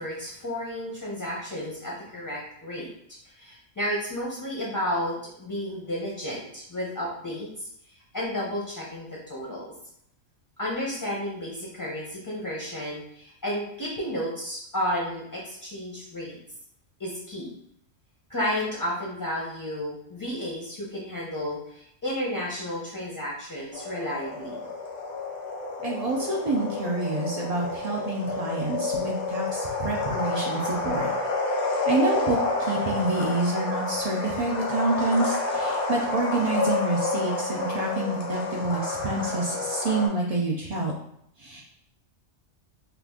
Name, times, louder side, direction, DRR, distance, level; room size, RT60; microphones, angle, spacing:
voice 1, 0.0-2.9 3.2-7.7 8.1-9.7 10.6-16.4 17.0-17.5 18.3-24.7, equal, 25° left, -5 dB, 0.5 m, -32 dB
sound 1, 23.7-40.1, left 3 dB, 65° left, 1.0 m, -29 dB
voice 2, 25.8-31.1 31.9-40.9 41.4-41.6, right 2 dB, 80° right, -3 dB, 0.3 m, -27 dB
2.8 x 2.4 x 3.5 m, 0.72 s
omnidirectional pair, 1.3 m